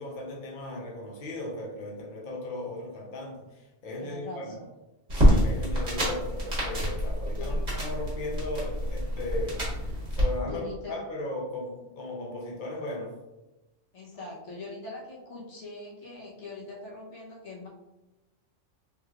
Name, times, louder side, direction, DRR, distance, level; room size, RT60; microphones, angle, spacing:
voice 1, 0.0-4.5 5.1-13.2, left 1 dB, 50° left, -2 dB, 0.7 m, -37 dB
voice 2, 4.0-4.6 7.3-7.5 10.4-11.0 13.9-17.7, left 3 dB, 65° left, -4 dB, 1.2 m, -42 dB
sound 1, 5.1-10.2, equal, 35° right, 1.4 m, -26 dB
3.4 x 3.0 x 2.4 m, 1.0 s
omnidirectional pair, 1.3 m